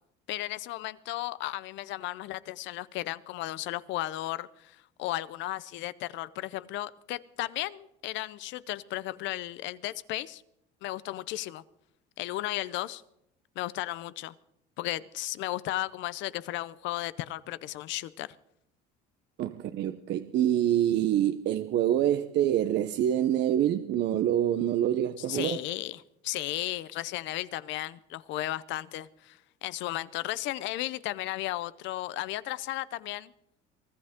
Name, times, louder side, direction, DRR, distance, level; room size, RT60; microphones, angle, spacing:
voice 1, 0.3-10.4 10.8-11.6 12.2-13.0 13.6-14.3 14.8-18.4 25.2-33.3, left 16 dB, 70° left, 0.8 m, -35 dB
voice 2, 19.4-25.6, right 11 dB, 60° right, 0.8 m, -26 dB
24.0 x 14.0 x 3.7 m
supercardioid pair, 95°, 20 cm